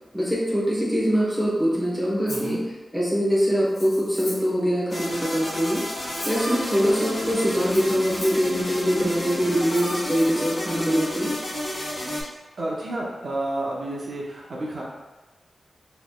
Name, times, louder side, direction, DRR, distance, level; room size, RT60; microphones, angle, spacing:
voice 1, 0.1-2.6 2.9-5.8 6.2-11.3, equal, 5° right, -6 dB, 1.0 m, -23 dB
Rattle (instrument), 2.3-2.5 3.6-4.6 5.6-6.5 7.6-8.5 9.6-10.3, left 1 dB, 85° left, 1.1 m, -39 dB
voice 2, 2.3-2.6 12.6-14.8, right 1 dB, 60° right, -3 dB, 0.6 m, -30 dB
sound 1, 4.9-12.2, left 1 dB, 30° left, 0.9 m, -31 dB
4.1 x 3.1 x 2.2 m, 1.1 s
wide cardioid pair, 120°, 0 cm